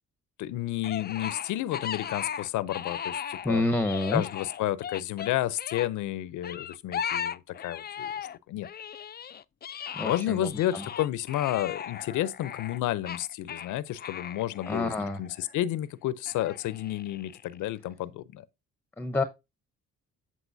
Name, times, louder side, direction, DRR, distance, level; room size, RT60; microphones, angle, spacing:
voice 1, 0.4-3.6 4.1-8.1 8.5-8.7 10.0-14.9 15.2-18.4, left 14 dB, 80° left, 0.6 m, -31 dB
sound 1, 0.8-3.5 3.8-5.9 6.4-8.4 8.6-15.6 16.3-17.6, left 8 dB, 35° left, 0.4 m, -37 dB
voice 2, 3.4-4.2 9.9-10.9 14.7-15.2 19.0-19.2, left 2 dB, 5° left, 0.8 m, -28 dB
8.2 x 7.4 x 2.6 m
cardioid pair, 90°, 30 cm